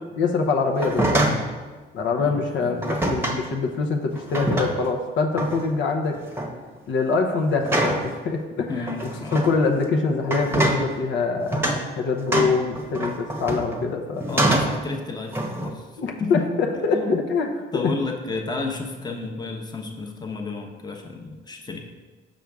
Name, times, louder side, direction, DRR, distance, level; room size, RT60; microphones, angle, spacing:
voice 1, 0.2-1.2 1.9-6.2 6.9-8.9 9.3-14.5 16.0-17.5 17.8-17.9, left 4 dB, 70° left, 3 dB, 0.8 m, -24 dB
sound 1, 0.7-1.5 2.8-3.4 4.1-4.9 5.4-5.7 6.1-6.5 7.6-8.1 8.9-9.5 10.2-10.9 11.5-11.8 12.3-13.8 14.2-14.8 15.3-15.7, right 1 dB, 10° right, 0.9 m, -24 dB
voice 2, 2.2-2.8 8.7-9.4 14.3-16.4 16.7-17.2 17.7-21.8, left 3 dB, 20° left, 2 dB, 0.9 m, -31 dB
6.1 x 5.2 x 3.5 m, 1.3 s
cardioid pair, 90°, 20 cm